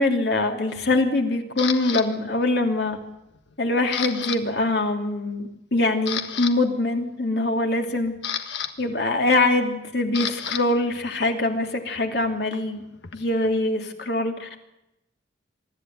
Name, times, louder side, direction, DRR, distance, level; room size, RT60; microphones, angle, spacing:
voice 1, 0.0-3.0 3.6-8.1 8.8-12.8 13.1-14.6, left 2 dB, 70° left, 3 dB, 2.9 m, -23 dB
Camera, 1.6-2.0 2.6-3.0 3.3-4.4 4.7-4.9 5.4-5.5 5.9-6.5 7.7-10.6 10.9-13.5, left 8 dB, 85° left, 1.6 m, -32 dB
23.5 x 13.5 x 9.3 m, 0.88 s
head